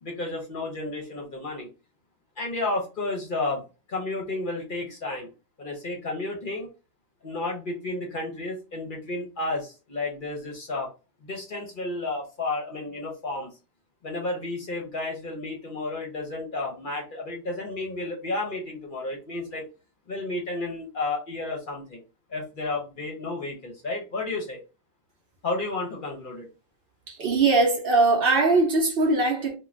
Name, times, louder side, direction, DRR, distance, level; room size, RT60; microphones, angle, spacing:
voice 1, 0.0-1.7 2.4-3.6 3.9-5.3 5.6-6.7 7.2-10.9 11.2-13.5 14.0-19.6 20.1-22.0 22.3-24.6 25.4-26.5, left 2 dB, 50° left, 0.7 m, -32 dB
voice 2, 27.1-29.5, right 3 dB, 55° right, 0.8 m, -21 dB
2.4 x 2.2 x 3.1 m
omnidirectional pair, 1.3 m